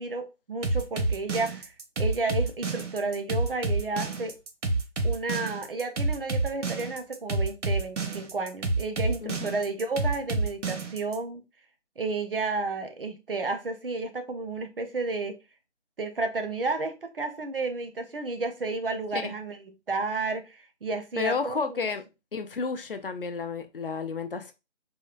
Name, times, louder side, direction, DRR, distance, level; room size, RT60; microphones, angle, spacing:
voice 1, 0.0-4.4 5.0-11.4 12.0-15.3 16.0-19.6 19.9-21.9, right 3 dB, 55° right, 0.5 m, -32 dB
sound 1, 0.6-11.2, right 2 dB, 85° right, 0.8 m, -28 dB
voice 2, 9.2-9.5 19.1-19.3 21.2-22.0 22.3-24.5, left 5 dB, 50° left, 0.4 m, -31 dB
3.6 x 2.1 x 2.3 m
figure-of-eight pair, 160°, 35 cm